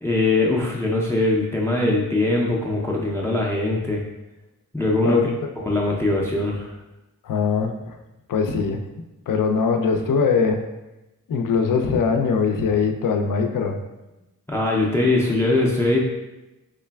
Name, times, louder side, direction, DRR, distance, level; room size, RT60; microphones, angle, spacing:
voice 1, 0.0-4.0 4.7-5.2 5.6-6.7 14.5-16.0, left 2 dB, 10° left, -2 dB, 0.4 m, -21 dB
voice 2, 5.0-5.5 7.2-8.0 8.3-8.8 9.3-10.6 11.3-13.8, left 5 dB, 65° left, 5 dB, 0.5 m, -21 dB
3.8 x 3.2 x 2.2 m, 1.0 s
wide cardioid pair, 90°, 35 cm